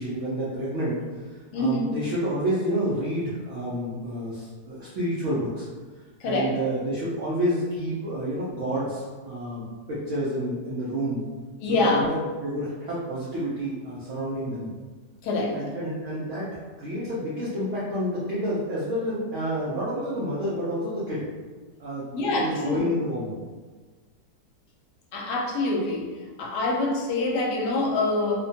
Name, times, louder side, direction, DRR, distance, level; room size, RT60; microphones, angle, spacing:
voice 1, 0.0-5.7 6.2-11.2 11.7-14.7 15.5-16.5 16.8-21.3 21.8-23.3, equal, 75° right, -8 dB, 0.7 m, -29 dB
voice 2, 1.5-1.9 6.2-6.5 11.6-12.1 15.2-15.5 22.1-22.8 25.1-26.1 26.4-28.5, left 2 dB, 75° left, -1 dB, 1.1 m, -25 dB
3.0 x 2.1 x 2.7 m, 1.4 s
omnidirectional pair, 1.9 m